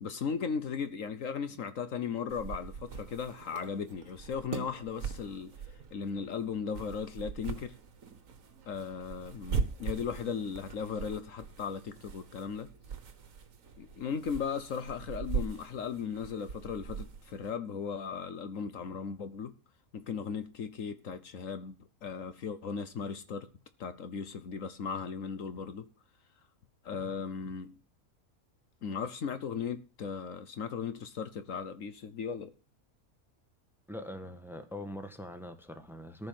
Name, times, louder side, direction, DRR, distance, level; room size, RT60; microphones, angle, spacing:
voice 1, 0.0-5.5 5.9-7.7 8.7-12.7 13.8-19.5 19.9-21.7 22.0-23.5 23.8-25.9 26.8-27.8 28.8-32.5, left 6 dB, 65° left, 1.3 m, -37 dB
sound 1, 2.3-17.5, right 5 dB, 60° right, 1.7 m, -41 dB
voice 2, 33.9-36.3, left 1 dB, ahead, 1.3 m, -42 dB
14.5 x 5.4 x 7.5 m
omnidirectional pair, 1.5 m